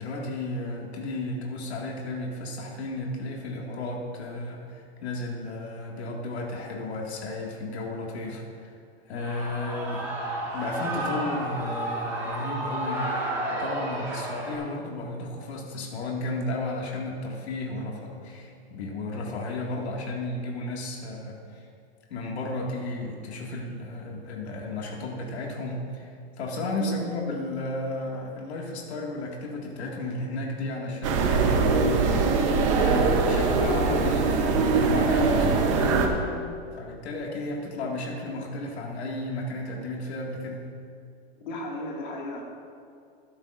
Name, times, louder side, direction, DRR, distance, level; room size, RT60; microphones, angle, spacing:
voice 1, 0.0-8.8 9.1-10.1 10.5-21.7 22.1-31.9 32.8-36.2 36.7-40.6, left 2 dB, 90° left, -1 dB, 2.2 m, -33 dB
Shout / Cheering, 9.2-14.6, right 1 dB, 10° right, 1.7 m, -32 dB
sound 1, 31.0-36.1, right 4 dB, 30° right, 0.8 m, -22 dB
voice 2, 41.4-42.4, left 1 dB, 45° left, -2 dB, 2.2 m, -35 dB
14.5 x 11.5 x 2.6 m, 2.4 s
supercardioid pair, 180°, 32 cm